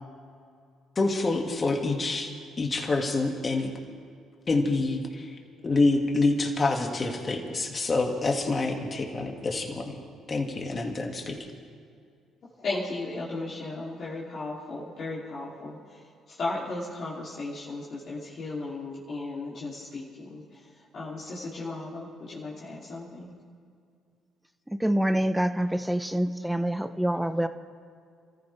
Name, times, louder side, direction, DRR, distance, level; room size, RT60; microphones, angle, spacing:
voice 1, 1.0-2.3 2.6-3.7 4.5-5.4 5.6-10.0 10.3-11.4, left 3 dB, 35° left, 2 dB, 2.5 m, -27 dB
voice 2, 12.6-20.5 20.9-23.3, left 2 dB, 50° left, -8 dB, 3.5 m, -35 dB
voice 3, 24.8-27.5, right 1 dB, 5° right, 10 dB, 0.9 m, -26 dB
27.5 x 14.5 x 3.6 m, 2.3 s
hypercardioid pair, 55°, 0 cm